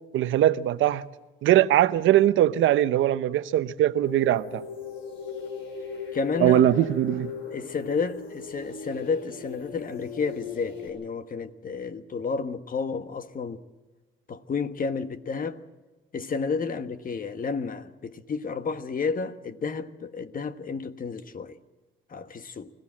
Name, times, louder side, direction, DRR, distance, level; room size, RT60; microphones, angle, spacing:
voice 1, 0.1-1.0 1.4-4.6 6.4-7.3, right 12 dB, 80° right, 0.8 m, -21 dB
sound 1, 4.0-10.9, left 5 dB, 75° left, 5.1 m, -38 dB
voice 2, 6.1-6.8 7.5-13.6 14.3-15.6 16.1-21.6 22.1-22.7, left 5 dB, 45° left, 1.3 m, -31 dB
25.0 x 16.0 x 7.5 m
cardioid pair, 90°, 20 cm